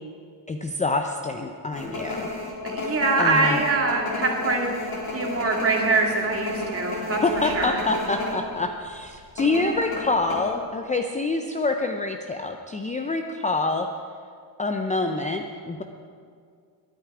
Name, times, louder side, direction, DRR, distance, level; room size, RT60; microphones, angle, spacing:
voice 1, 0.5-2.3 3.2-3.6 7.2-13.9 14.6-15.8, left 3 dB, 15° left, 4 dB, 0.6 m, -26 dB
sound 1, 1.7-8.3 8.6-8.8 9.4-10.4, left 2 dB, 50° left, 4.0 m, -32 dB
voice 2, 2.6-4.7 5.1-7.8, right 3 dB, 30° right, 1 dB, 2.3 m, -24 dB
21.5 x 9.1 x 4.9 m, 2.2 s
cardioid pair, 125°, 47 cm